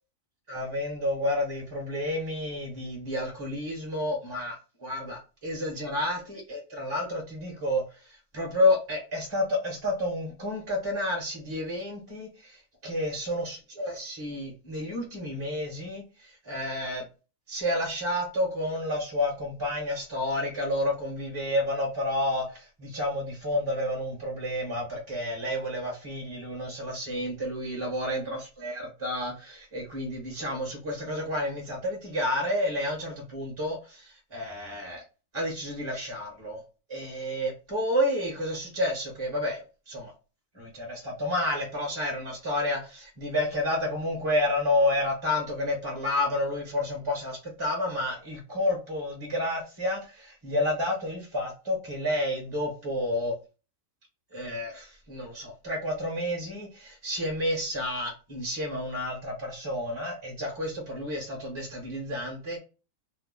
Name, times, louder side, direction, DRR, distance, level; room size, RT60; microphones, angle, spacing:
voice 1, 0.5-7.8 8.3-12.6 12.8-17.0 17.5-35.0 35.3-36.6 36.9-40.1 40.5-53.3 54.3-62.6, left 1 dB, 30° right, 0 dB, 0.6 m, -30 dB
2.7 x 2.0 x 3.5 m, 0.32 s
omnidirectional pair, 1.4 m